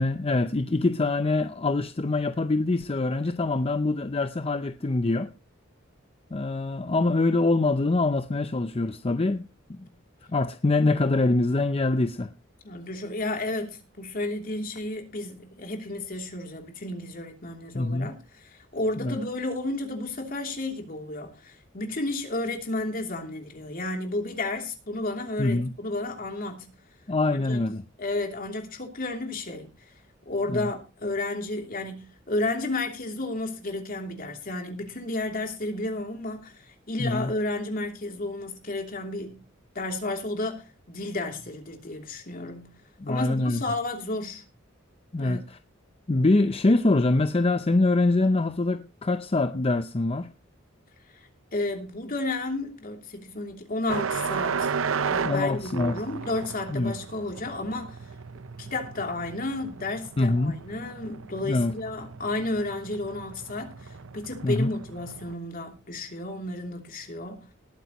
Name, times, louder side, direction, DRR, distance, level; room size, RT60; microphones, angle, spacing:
voice 1, 0.0-5.3 6.3-9.8 10.3-12.3 17.7-18.1 19.0-19.2 25.4-25.7 27.1-27.8 30.5-30.7 37.0-37.3 43.0-43.6 45.1-45.6 46.1-50.3 55.2-56.0 56.7-56.9 60.2-60.6 61.4-61.8 64.4-64.7, left 2 dB, 30° left, 0.6 m, -24 dB
voice 2, 12.6-26.7 27.3-27.6 28.0-29.7 30.3-39.4 39.7-42.7 43.1-44.4 45.2-45.4 51.1-54.7 55.0-58.0 58.6-67.5, left 2 dB, 45° left, 3.0 m, -32 dB
sound 1, 53.9-65.3, right 5 dB, 85° right, 0.7 m, -34 dB
19.5 x 9.2 x 3.0 m
head